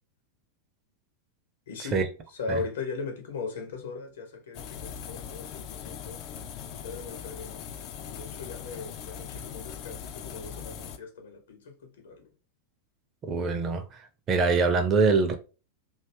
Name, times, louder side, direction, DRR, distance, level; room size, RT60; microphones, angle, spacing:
voice 1, 1.7-6.2 6.7-7.6 8.1-12.3, left 4 dB, 60° left, 1.0 m, -39 dB
sound 1, 4.5-11.0, left 8 dB, 40° left, 0.4 m, -40 dB
voice 2, 13.2-14.0 14.3-15.4, right 4 dB, 30° right, 0.5 m, -24 dB
2.6 x 2.3 x 3.3 m
figure-of-eight pair, 90°, 0 cm